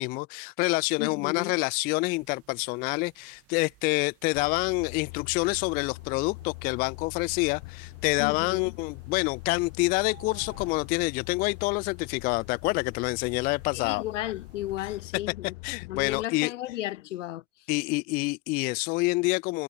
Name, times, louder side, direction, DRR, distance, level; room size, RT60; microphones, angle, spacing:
voice 1, 0.0-14.0 15.6-16.5 17.7-19.6, left 24 dB, 25° left, 0.3 m, -27 dB
voice 2, 1.0-1.5 8.2-8.7 13.7-15.5 15.9-17.4, left 15 dB, 85° left, 2.9 m, -34 dB
sound 1, 2.0-15.1, right 18 dB, 40° right, 7.9 m, -59 dB
Truck, 4.3-16.3, left 27 dB, 60° left, 7.7 m, -43 dB
supercardioid pair, 150°, 36 cm